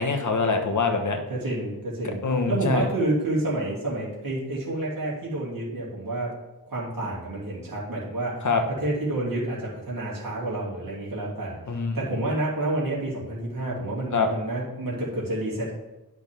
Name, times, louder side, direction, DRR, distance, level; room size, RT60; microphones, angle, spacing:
voice 1, 0.0-1.2 2.2-2.9 8.4-8.6 11.7-12.0 14.1-14.3, left 4 dB, 50° left, 4 dB, 1.2 m, -24 dB
voice 2, 1.3-2.2 2.5-6.3 6.7-15.7, right 2 dB, 60° right, -6 dB, 2.6 m, -29 dB
10.5 x 6.1 x 3.6 m, 1.0 s
wide cardioid pair, 95°, 39 cm